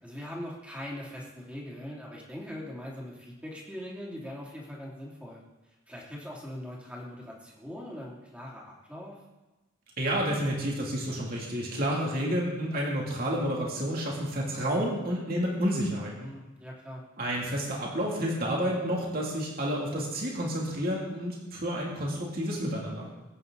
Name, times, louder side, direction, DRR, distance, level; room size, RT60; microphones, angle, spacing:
voice 1, 0.0-5.4 5.9-9.2 16.2-17.0, equal, 5° right, -4 dB, 3.1 m, -41 dB
voice 2, 10.0-16.3 17.2-23.1, equal, 45° right, -3 dB, 3.1 m, -30 dB
22.0 x 9.4 x 4.1 m, 1.1 s
head